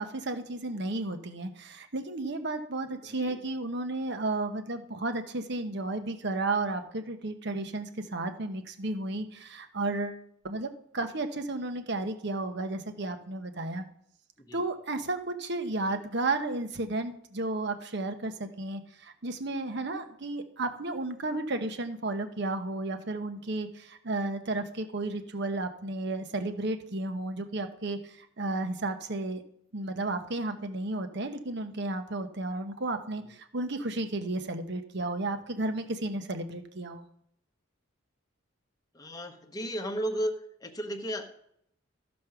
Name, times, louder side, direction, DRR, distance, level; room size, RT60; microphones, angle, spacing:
voice 1, 0.0-13.9 14.5-29.4 29.7-37.1, right 2 dB, 60° right, 8 dB, 1.0 m, -33 dB
voice 2, 38.9-40.3 40.6-41.3, equal, 20° left, 5 dB, 1.0 m, -34 dB
14.0 x 5.3 x 5.9 m, 0.73 s
head